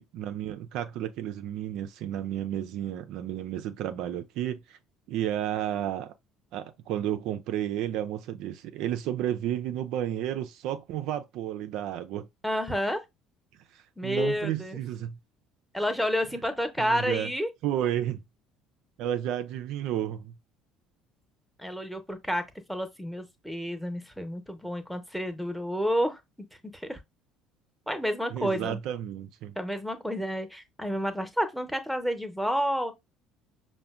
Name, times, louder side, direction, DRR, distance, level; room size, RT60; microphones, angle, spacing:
voice 1, 0.0-4.8 5.1-6.1 6.5-12.3 13.7-15.2 16.8-17.3 17.6-18.2 19.0-20.3 28.3-29.6, right 11 dB, 60° right, 0.3 m, -32 dB
voice 2, 12.4-13.0 14.0-14.8 15.7-17.5 21.6-26.2 26.7-27.0 27.9-28.8 29.6-32.9, equal, ahead, 0.8 m, -30 dB
5.7 x 2.1 x 2.4 m
figure-of-eight pair, 60°, 0 cm